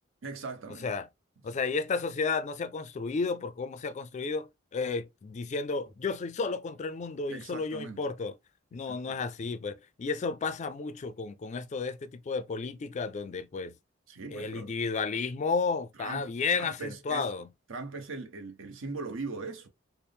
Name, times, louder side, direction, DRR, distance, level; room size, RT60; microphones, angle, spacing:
voice 1, 0.2-0.9 7.3-8.1 8.7-9.2 14.1-14.7 16.0-17.3 17.7-19.7, right 3 dB, 75° right, 0.9 m, -40 dB
voice 2, 1.4-8.4 8.7-13.7 14.3-17.5, left 4 dB, 35° left, 0.3 m, -32 dB
4.3 x 2.0 x 3.4 m
head